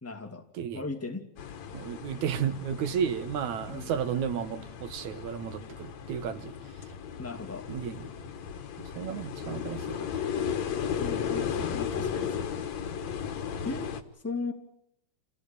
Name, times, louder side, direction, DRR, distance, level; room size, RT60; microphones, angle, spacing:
voice 1, 0.0-0.4 0.7-1.2 3.7-3.9 7.2-7.7 11.0-12.7 13.6-13.9 14.2-14.5, left 3 dB, 5° left, 5 dB, 1.6 m, -37 dB
sound 1, 1.4-14.0, left 7 dB, 70° left, 2.7 m, -35 dB
voice 2, 1.7-6.5 7.7-8.1 8.8-10.2 12.0-12.1, right 8 dB, 75° right, 11 dB, 2.7 m, -33 dB
29.0 x 16.0 x 9.0 m, 0.74 s
omnidirectional pair, 3.4 m